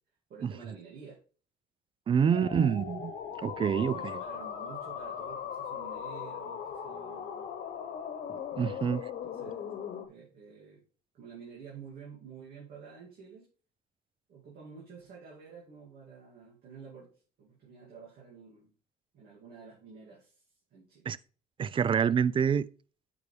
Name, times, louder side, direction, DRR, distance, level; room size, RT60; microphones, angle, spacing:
voice 1, 0.3-1.2 2.2-2.6 3.7-7.5 8.6-9.7 10.1-10.8 11.1-13.5 14.3-17.1 17.4-18.7 19.1-20.4 20.7-21.1, right 6 dB, 65° right, 2.5 m, -50 dB
voice 2, 2.1-4.2 8.3-9.1 21.1-21.2 21.6-22.7, right 7 dB, 30° right, 0.4 m, -27 dB
sound 1, 2.3-10.1, left 8 dB, 60° left, 1.1 m, -39 dB
8.9 x 5.4 x 3.3 m
cardioid pair, 110°, 17 cm